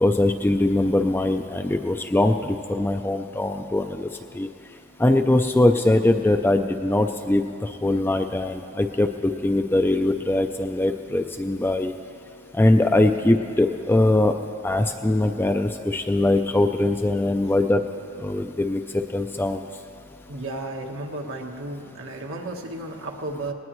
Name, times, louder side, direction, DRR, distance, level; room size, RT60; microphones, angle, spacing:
voice 1, 0.0-4.1 4.3-4.5 5.0-11.9 12.5-14.4 14.6-17.8 18.2-19.6, left 1 dB, 10° left, 6 dB, 0.4 m, -21 dB
voice 2, 20.3-23.5, right 2 dB, 60° right, 1 dB, 1.3 m, -33 dB
20.0 x 19.0 x 3.1 m, 2.8 s
head